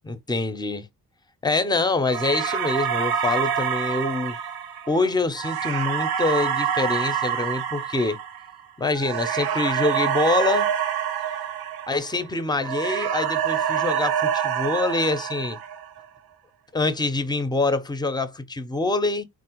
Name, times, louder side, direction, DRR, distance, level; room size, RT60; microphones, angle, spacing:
voice 1, 0.0-0.9 1.4-4.4 4.9-8.2 8.8-10.7 11.9-15.6 16.7-19.2, left 3 dB, 10° left, 0.4 m, -25 dB
sound 1, 2.1-12.3 12.6-16.0, right 9 dB, 85° right, 0.6 m, -26 dB
3.3 x 2.0 x 2.9 m
cardioid pair, 85°, 36 cm